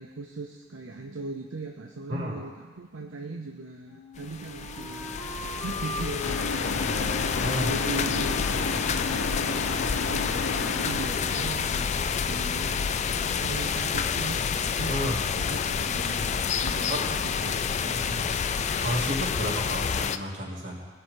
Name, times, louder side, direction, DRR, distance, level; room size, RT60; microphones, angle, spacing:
voice 1, 0.0-12.0 12.3-15.0 15.4-18.4, right 3 dB, 90° right, 2 dB, 0.7 m, -39 dB
Wind instrument woodwind instrument, 3.8-10.7, left 1 dB, 10° left, 2.3 m, -42 dB
sound 1, 4.2-20.2, left 6 dB, 35° left, 0.4 m, -29 dB
sound 2, 6.2-11.6, left 3 dB, 75° left, 0.6 m, -32 dB
voice 2, 7.4-7.7 14.9-15.2 16.9-17.1 18.8-20.8, equal, 70° right, -5 dB, 3.0 m, -31 dB
20.0 x 6.8 x 3.9 m, 1.4 s
head